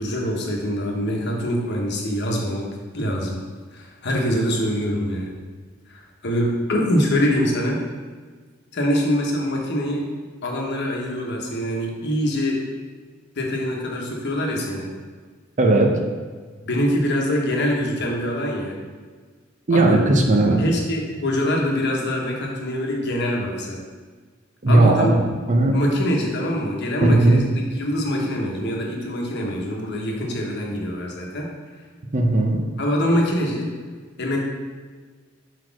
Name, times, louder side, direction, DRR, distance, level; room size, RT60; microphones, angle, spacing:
voice 1, 0.0-2.7 2.9-3.4 3.7-5.3 5.9-7.8 8.7-10.1 10.4-12.6 13.4-14.9 16.6-18.8 19.7-20.0 20.6-23.8 24.7-25.2 25.7-31.5 32.8-33.7 34.2-34.4, equal, 60° left, -1 dB, 1.1 m, -24 dB
voice 2, 15.6-15.9 19.7-20.6 24.6-25.8 27.0-27.4 32.1-32.6, right 2 dB, 40° right, 2 dB, 0.7 m, -17 dB
4.7 x 4.2 x 5.9 m, 1.5 s
head